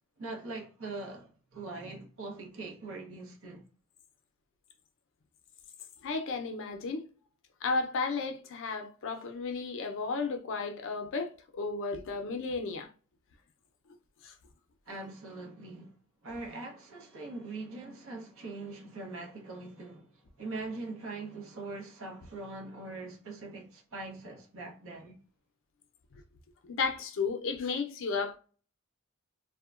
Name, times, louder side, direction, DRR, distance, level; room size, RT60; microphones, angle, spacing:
voice 1, 0.2-3.7 14.9-16.0 16.2-25.2, right 3 dB, 65° right, 0.9 m, -42 dB
voice 2, 6.0-7.0 7.6-12.9 14.2-14.3 26.1-26.2 26.6-28.4, left 4 dB, 60° left, 0.5 m, -33 dB
2.8 x 2.1 x 2.4 m
head